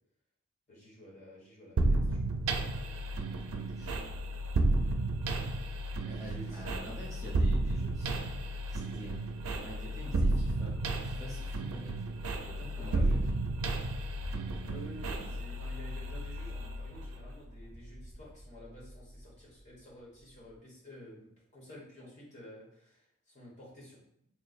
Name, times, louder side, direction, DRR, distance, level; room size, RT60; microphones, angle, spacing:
voice 1, 0.7-2.3 6.1-6.6 12.8-13.2 14.5-24.0, left 1 dB, 35° left, -4 dB, 1.0 m, -51 dB
sound 1, 1.8-17.4, right 2 dB, 90° right, 0.4 m, -32 dB
voice 2, 3.5-4.0 6.0-8.3 8.7-12.0 12.4-13.4, equal, 15° right, -4 dB, 0.6 m, -47 dB
sound 2, 13.5-20.6, equal, 60° left, 1.1 m, -50 dB
3.0 x 2.1 x 4.0 m, 0.73 s
head